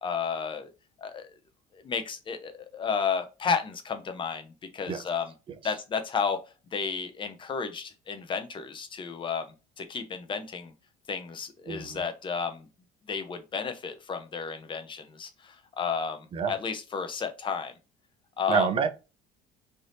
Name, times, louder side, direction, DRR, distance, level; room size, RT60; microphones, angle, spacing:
voice 1, 0.0-0.7 1.0-1.3 1.7-5.3 5.6-6.4 6.7-9.5 9.8-10.7 11.1-12.6 13.1-17.7 18.4-18.7, left 6 dB, 30° left, 0.7 m, -32 dB
voice 2, 11.7-12.0 16.3-16.5 18.5-18.9, right 6 dB, 35° right, 0.5 m, -27 dB
3.4 x 2.6 x 2.6 m
supercardioid pair, 100°, 16 cm